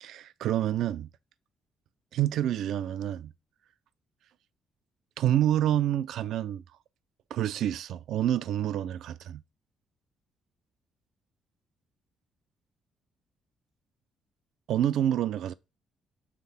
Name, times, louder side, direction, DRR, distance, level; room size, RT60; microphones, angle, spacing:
voice 1, 0.0-1.1 2.1-3.3 5.2-6.6 7.3-9.4 14.7-15.5, right 11 dB, 80° right, 0.3 m, -28 dB
7.3 x 3.5 x 4.0 m
cardioid pair, 90°, 0 cm